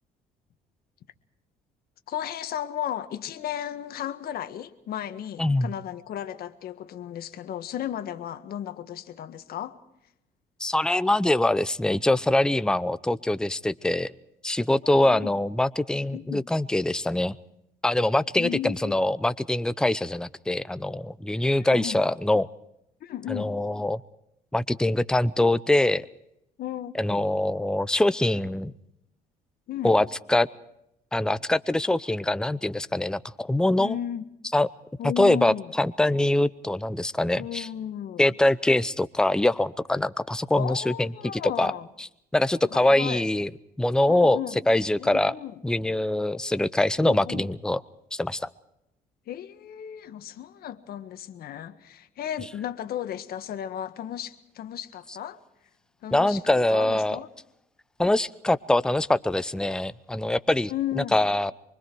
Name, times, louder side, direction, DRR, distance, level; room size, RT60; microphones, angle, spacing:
voice 1, 2.1-9.8 14.8-15.3 16.1-16.4 18.4-19.0 21.6-22.0 23.0-23.6 26.6-27.3 29.7-30.0 33.8-34.3 35.0-35.7 37.3-38.3 40.5-41.9 42.7-43.2 44.1-44.6 45.0-45.5 47.0-47.5 49.3-55.4 56.0-57.3 60.7-61.3, left 11 dB, 65° left, 1.7 m, -35 dB
voice 2, 5.4-5.7 10.6-14.1 14.4-17.4 17.8-22.5 23.3-24.0 24.5-26.1 26.9-28.7 29.8-30.5 31.1-34.0 34.5-34.7 35.2-37.7 38.2-41.1 41.6-41.7 42.0-42.1 42.3-43.5 43.8-44.4 44.7-45.3 45.6-47.8 48.1-48.5 56.1-57.2 58.0-61.5, left 1 dB, 5° left, 0.7 m, -23 dB
25.0 x 24.0 x 4.6 m
cardioid pair, 110°, 17 cm